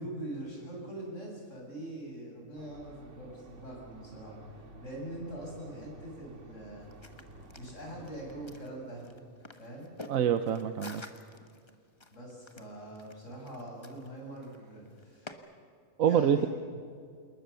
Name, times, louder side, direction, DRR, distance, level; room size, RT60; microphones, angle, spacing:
voice 1, 0.0-6.9 7.6-9.1 9.6-9.9 12.1-15.3 16.1-16.5, right 1 dB, 65° left, -1 dB, 7.5 m, -43 dB
sound 1, 2.5-8.6, right 2 dB, 65° right, 2.2 m, -52 dB
sound 2, 6.8-15.3, left 2 dB, 20° left, 1.4 m, -51 dB
voice 2, 10.1-11.0 16.0-16.5, right 8 dB, 85° right, 9 dB, 1.3 m, -26 dB
28.0 x 21.0 x 6.9 m, 2.2 s
omnidirectional pair, 1.4 m